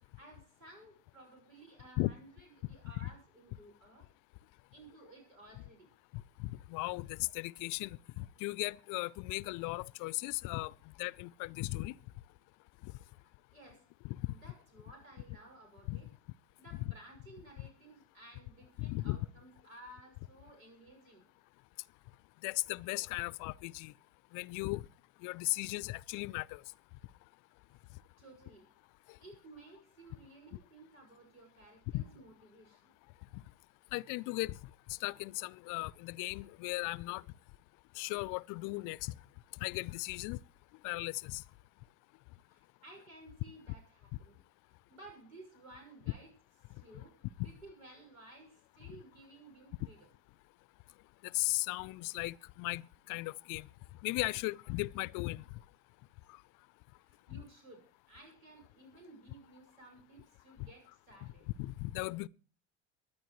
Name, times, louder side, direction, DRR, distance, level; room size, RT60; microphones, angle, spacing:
voice 1, 0.2-4.1 4.7-5.9 13.2-13.9 14.3-16.1 16.6-21.3 28.2-28.7 29.2-32.9 42.5-44.4 44.9-46.3 46.7-50.1 57.0-61.5, right 2 dB, 90° right, 6.1 m, -56 dB
voice 2, 6.1-12.0 12.8-12.9 14.0-14.3 15.9-16.0 18.8-19.2 22.4-23.9 24.3-24.9 25.2-26.6 29.1-29.2 31.9-32.0 33.3-33.4 33.9-37.2 37.9-39.2 39.6-40.4 40.8-41.4 46.9-47.0 47.4-47.5 48.9-49.0 51.2-53.7 54.0-55.6 56.3-56.4 57.3-57.4 61.2-61.3 61.6-62.3, left 22 dB, 55° left, 0.5 m, -37 dB
23.5 x 10.0 x 3.1 m
hypercardioid pair, 75°, 39 cm